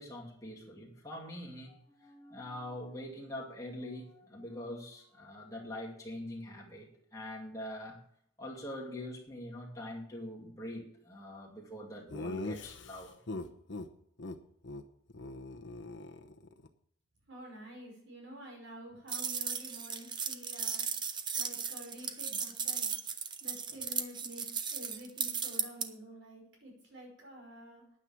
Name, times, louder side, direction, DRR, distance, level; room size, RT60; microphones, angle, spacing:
voice 1, 0.0-8.0 8.4-13.1 23.7-23.8, left 1 dB, 15° left, -2 dB, 2.4 m, -44 dB
Laughter, 12.1-13.9 14.2-14.4 14.6-14.8 15.1-16.7, left 2 dB, 60° left, 0.9 m, -41 dB
voice 2, 17.3-20.9 21.3-22.9 23.4-24.5 24.7-27.8, equal, 70° right, -1 dB, 5.5 m, -49 dB
sound 1, 19.1-25.9, right 6 dB, 20° right, 0.7 m, -36 dB
9.7 x 8.9 x 7.3 m, 0.66 s
head